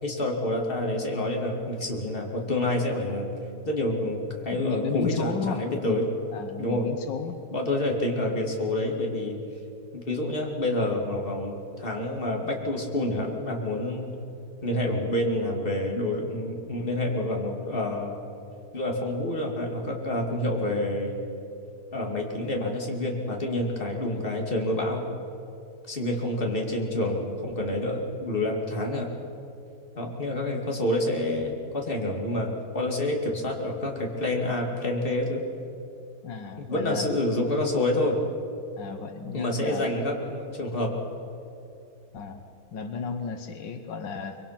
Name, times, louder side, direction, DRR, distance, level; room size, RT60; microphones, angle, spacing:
voice 1, 0.0-3.3 3.7-6.1 6.6-6.9 7.5-9.4 9.9-14.2 14.6-18.2 18.7-21.2 21.9-25.1 25.9-29.1 30.0-35.4 36.6-38.2 39.3-41.0, left 1 dB, 30° left, 0 dB, 2.7 m, -28 dB
voice 2, 4.5-6.1 6.3-7.4 36.2-37.1 38.8-39.9 42.1-42.4 42.7-44.4, left 6 dB, 85° left, 7 dB, 1.8 m, -34 dB
24.0 x 23.0 x 5.9 m, 2.7 s
omnidirectional pair, 1.9 m